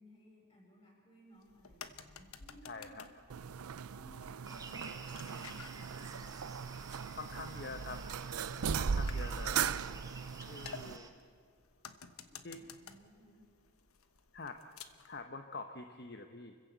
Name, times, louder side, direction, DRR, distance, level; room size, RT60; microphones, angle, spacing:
voice 1, 0.0-3.0 3.9-6.3 10.4-11.2 12.1-13.4, equal, 25° left, -2 dB, 7.5 m, -61 dB
sound 1, 1.4-15.2, left 6 dB, 80° left, 1.2 m, -55 dB
voice 2, 2.7-3.1 7.1-8.0 8.7-9.7 10.4-11.1 12.4-12.6 14.3-14.6 15.1-16.5, left 3 dB, 50° left, 6 dB, 1.0 m, -46 dB
sound 2, 3.3-11.0, right 6 dB, 90° right, 0.5 m, -38 dB
sound 3, 4.5-11.1, right 4 dB, 15° right, 1.4 m, -51 dB
29.0 x 15.5 x 8.1 m, 2.1 s
head